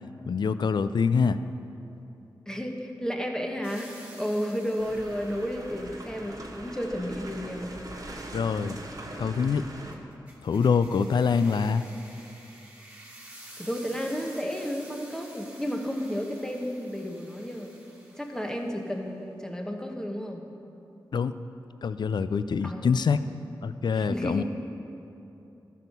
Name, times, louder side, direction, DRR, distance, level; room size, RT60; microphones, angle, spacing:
voice 1, 0.3-1.4 8.3-8.8 9.2-9.7 10.4-11.9 21.1-21.3 21.8-23.2 23.6-24.4, left 5 dB, 70° left, 13 dB, 0.4 m, -25 dB
voice 2, 2.5-7.8 13.6-17.7 18.1-20.4 22.6-22.9 23.9-24.4, equal, 10° left, 2 dB, 1.2 m, -32 dB
sound 1, 3.6-6.0 9.9-18.8, right 1 dB, 15° right, 2.0 m, -50 dB
sound 2, 4.8-9.9, right 1 dB, 50° right, 1.4 m, -41 dB
12.5 x 6.3 x 5.4 m, 2.9 s
cardioid pair, 45°, 8 cm